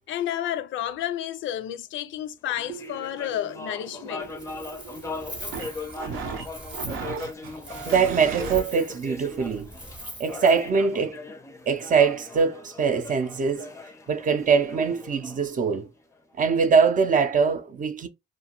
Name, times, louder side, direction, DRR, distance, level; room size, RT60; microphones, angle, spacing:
voice 1, 0.1-4.3, left 11 dB, 75° left, 0.4 m, -31 dB
sound 1, 2.5-16.1, left 3 dB, 15° left, 0.4 m, -40 dB
sound 2, 2.7-8.6, right 6 dB, 80° right, 0.7 m, -37 dB
Wind, 4.2-10.7, equal, 5° right, 0.8 m, -43 dB
voice 2, 7.8-9.7 10.2-11.2 11.7-13.7 14.1-15.9 16.4-18.1, right 5 dB, 40° right, 0.5 m, -22 dB
2.5 x 2.2 x 2.8 m
cardioid pair, 90°, 20 cm